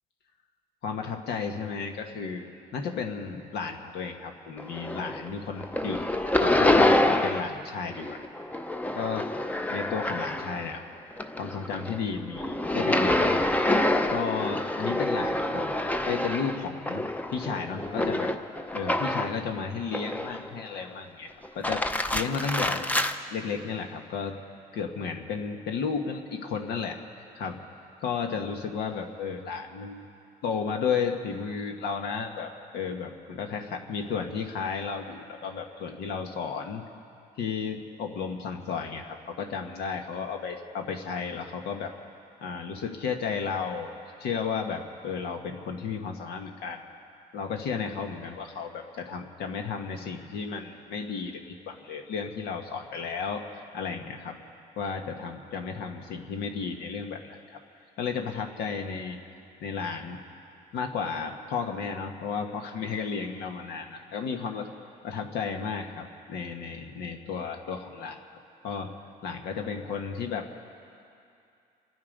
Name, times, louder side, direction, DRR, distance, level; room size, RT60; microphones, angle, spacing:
voice 1, 0.8-6.0 6.4-8.2 8.9-9.3 9.7-10.8 11.4-13.6 14.1-17.0 17.3-18.3 18.7-22.9 23.3-24.4 24.7-27.0 27.3-27.6 28.0-30.1 30.4-36.8 37.4-41.9 42.4-43.9 44.2-46.9 47.3-54.4 54.8-57.6 58.0-59.2 59.6-60.2 60.7-64.7 65.0-68.2 68.6-68.9 69.2-70.5, left 5 dB, 75° left, 3 dB, 1.4 m, -33 dB
sound 1, 4.6-5.3 5.6-7.6 7.9-10.7 11.1-19.4 19.9-20.6 21.4-23.1, left 1 dB, 10° left, 0.7 m, -27 dB
28.0 x 9.5 x 5.3 m, 2.5 s
cardioid pair, 110°, 17 cm